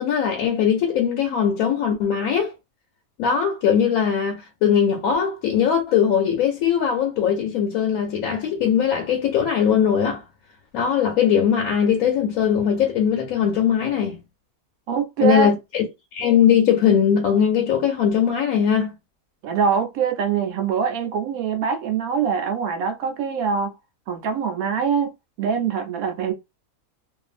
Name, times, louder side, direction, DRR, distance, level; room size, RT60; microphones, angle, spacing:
voice 1, 0.0-2.5 3.2-10.2 10.7-14.2 15.2-15.9 16.1-18.9, left 8 dB, 75° left, 1.0 m, -20 dB
voice 2, 14.9-15.5 19.4-23.7 24.1-25.1 25.4-26.3, right 6 dB, 75° right, 1.0 m, -23 dB
2.6 x 2.4 x 2.4 m
omnidirectional pair, 1.6 m